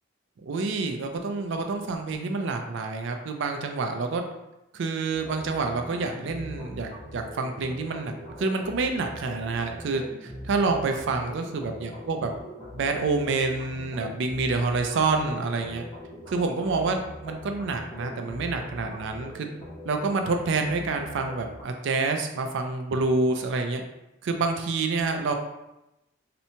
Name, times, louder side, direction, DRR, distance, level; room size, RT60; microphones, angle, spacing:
voice 1, 0.4-4.2 4.7-12.3 12.7-15.8 16.3-19.5 19.8-23.8 24.2-25.3, right 3 dB, 60° right, 5 dB, 0.3 m, -28 dB
sound 1, 5.1-21.6, equal, 30° left, 0.6 m, -42 dB
2.8 x 2.1 x 2.7 m, 0.93 s
head